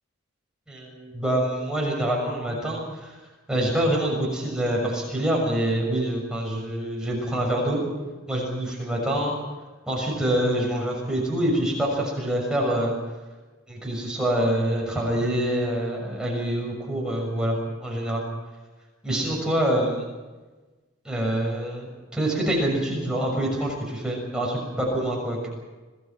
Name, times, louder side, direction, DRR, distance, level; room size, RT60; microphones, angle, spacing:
voice 1, 0.7-3.1 3.5-7.8 8.3-9.4 9.9-12.9 13.7-18.2 19.0-20.0 21.0-25.5, right 1 dB, 5° right, -2 dB, 6.5 m, -26 dB
27.0 x 19.5 x 6.0 m, 1.2 s
head